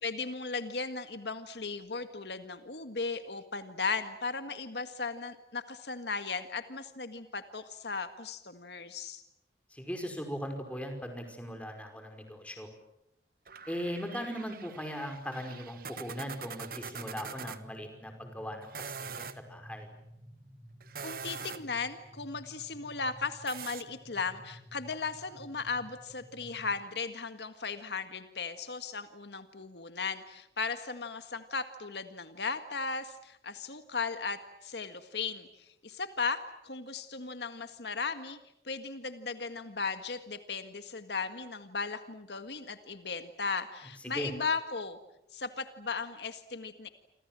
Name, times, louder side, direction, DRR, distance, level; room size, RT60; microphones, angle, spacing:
voice 1, 0.0-9.2 21.0-38.4 38.6-45.0 45.3-46.9, left 4 dB, 75° left, 9 dB, 1.8 m, -36 dB
voice 2, 9.7-12.7 13.7-19.9 44.0-44.3, equal, 10° left, 5 dB, 5.2 m, -39 dB
sound 1, 13.5-17.6 18.6-19.4 20.8-21.8 23.5-23.8, right 6 dB, 55° right, 1.3 m, -43 dB
sound 2, 16.9-26.8, equal, 20° right, 6.8 m, -53 dB
29.0 x 26.0 x 7.6 m, 0.83 s
head